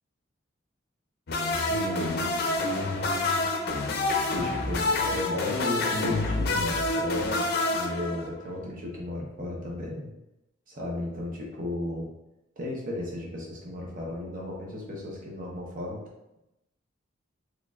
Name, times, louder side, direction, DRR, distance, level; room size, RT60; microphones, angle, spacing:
sound 1, 1.3-8.6, left 2 dB, 55° left, 0.5 m, -27 dB
voice 1, 1.7-2.3 4.3-10.1 10.7-12.1 12.6-16.0, left 1 dB, 45° right, -3 dB, 0.9 m, -34 dB
3.8 x 3.2 x 2.4 m, 0.90 s
head